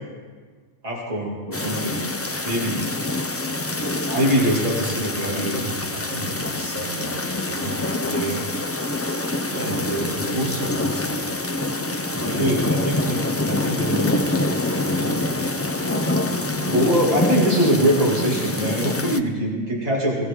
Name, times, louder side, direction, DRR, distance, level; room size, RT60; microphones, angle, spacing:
voice 1, 0.8-2.0 2.4-2.8 4.2-5.6 8.1-8.4 9.6-10.6 12.3-13.2 13.5-15.5 16.7-20.3, equal, 35° right, -4 dB, 2.3 m, -24 dB
sound 1, 1.5-19.2, left 2 dB, 20° left, 0.4 m, -25 dB
voice 2, 4.1-4.4 4.8-7.2 7.5-8.3 9.5-11.2 12.2-12.4 14.7-16.0, right 1 dB, 65° right, -5 dB, 3.8 m, -34 dB
20.5 x 15.5 x 3.7 m, 1.5 s
omnidirectional pair, 1.2 m